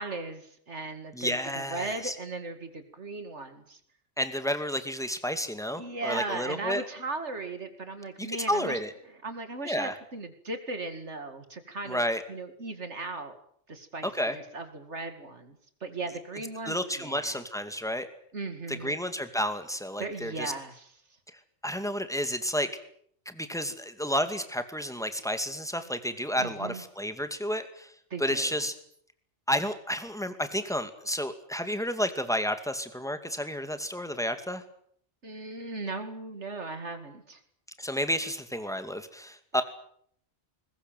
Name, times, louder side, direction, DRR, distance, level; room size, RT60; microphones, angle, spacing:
voice 1, 0.0-3.8 5.7-8.8 9.2-12.0 12.3-13.4 13.7-17.4 18.3-19.0 20.0-20.9 26.4-26.8 28.1-28.6 35.2-37.4, right 3 dB, 75° right, 8 dB, 2.6 m, -37 dB
voice 2, 1.1-2.1 4.2-6.8 8.2-8.9 9.6-9.9 11.9-12.2 14.0-14.4 16.6-18.1 18.7-20.5 21.6-22.7 23.3-27.9 28.2-28.7 29.5-34.6 37.8-39.6, equal, 5° left, 9 dB, 2.3 m, -31 dB
21.5 x 20.5 x 9.2 m, 0.65 s
omnidirectional pair, 1.2 m